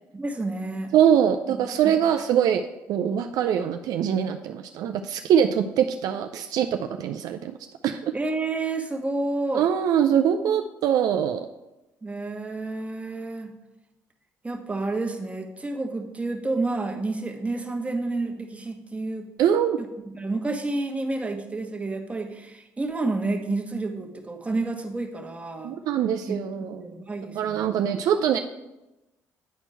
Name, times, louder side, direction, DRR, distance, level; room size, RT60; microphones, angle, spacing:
voice 1, 0.1-0.9 1.5-1.6 1.8-1.9 8.1-9.7 12.0-13.5 14.4-19.3 19.8-25.8 26.3-27.7, right 2 dB, 20° right, 2 dB, 1.3 m, -30 dB
voice 2, 0.9-7.6 7.8-8.1 9.5-11.5 19.4-19.8 25.6-26.8 27.4-28.4, right 9 dB, 70° right, 6 dB, 0.4 m, -23 dB
9.2 x 4.3 x 4.5 m, 0.99 s
supercardioid pair, 60°, 7 cm